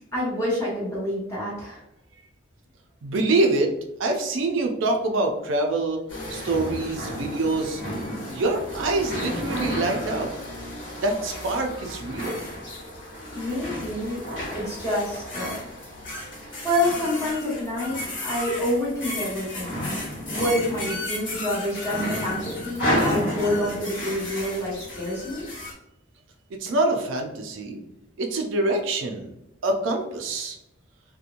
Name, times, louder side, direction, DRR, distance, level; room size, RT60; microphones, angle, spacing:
voice 1, 0.1-1.8 13.3-14.2 14.5-15.5 16.4-19.8 20.3-25.4, left 1 dB, 15° left, -8 dB, 1.1 m, -27 dB
voice 2, 3.0-3.7 4.0-6.0 6.3-7.8 8.3-10.3 11.0-12.4 26.6-27.8 28.2-29.3 29.6-30.6, right 2 dB, 70° right, 3 dB, 0.4 m, -25 dB
sound 1, 6.1-25.7, left 1 dB, 65° left, 1.1 m, -32 dB
2.8 x 2.2 x 2.5 m, 0.86 s
head